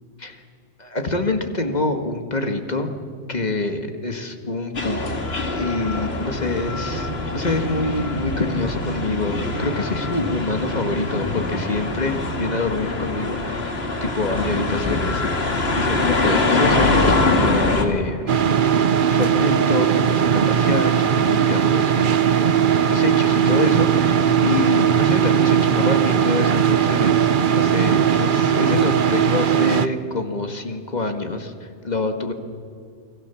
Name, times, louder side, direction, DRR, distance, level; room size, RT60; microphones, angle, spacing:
voice 1, 0.8-2.9 3.3-5.2 5.5-13.8 14.0-18.4 19.1-32.3, left 2 dB, 35° left, 6 dB, 1.9 m, -26 dB
sound 1, 4.7-17.8, left 2 dB, 55° left, 2.4 m, -23 dB
sound 2, 18.3-29.9, right 8 dB, 50° right, 0.8 m, -18 dB
29.0 x 22.5 x 7.1 m, 2.3 s
omnidirectional pair, 1.2 m